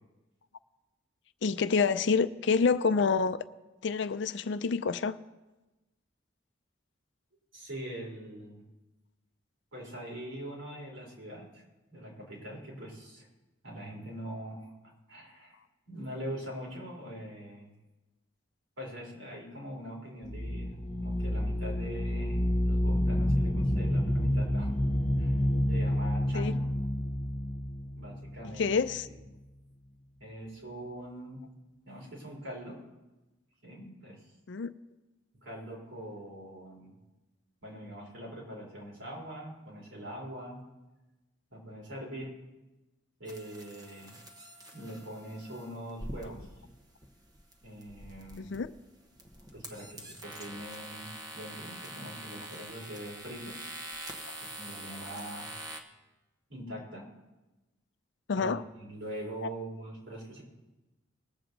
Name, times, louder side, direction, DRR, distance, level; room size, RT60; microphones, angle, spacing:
voice 1, 1.4-3.4 3.8-5.2 26.3-26.6 28.6-29.1 34.5-34.7 48.4-48.7 58.3-58.6 59.4-59.5, left 5 dB, 60° left, 13 dB, 0.5 m, -27 dB
voice 2, 7.5-8.6 9.7-11.6 11.9-13.3 13.6-14.7 15.1-15.6 15.9-17.7 18.8-24.7 25.2-26.6 28.0-28.7 29.0-29.1 30.2-31.4 31.8-32.8 33.6-34.2 35.3-37.0 37.6-40.6 41.5-42.3 43.2-44.2 44.7-46.5 47.6-48.6 49.5-51.1 51.3-53.7 54.4-55.5 56.5-57.1 58.4-58.5 58.8-60.4, right 1 dB, 75° right, -2 dB, 4.1 m, -43 dB
sound 1, 20.2-28.9, left 1 dB, 35° left, 1.3 m, -29 dB
sound 2, 43.3-55.8, right 1 dB, 20° right, 1.0 m, -45 dB
20.5 x 7.7 x 4.0 m, 1.1 s
head